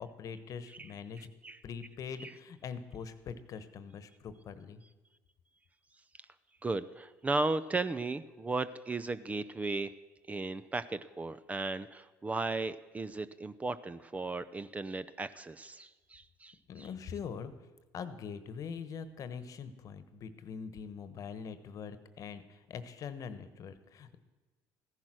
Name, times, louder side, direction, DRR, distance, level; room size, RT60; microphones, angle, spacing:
voice 1, 0.0-1.3 1.6-4.8 16.7-24.2, left 6 dB, 50° left, 12 dB, 1.2 m, -43 dB
voice 2, 6.6-9.9 10.3-16.9, right 3 dB, 20° right, 13 dB, 0.5 m, -36 dB
15.0 x 10.5 x 6.2 m, 1.2 s
supercardioid pair, 95°, 7 cm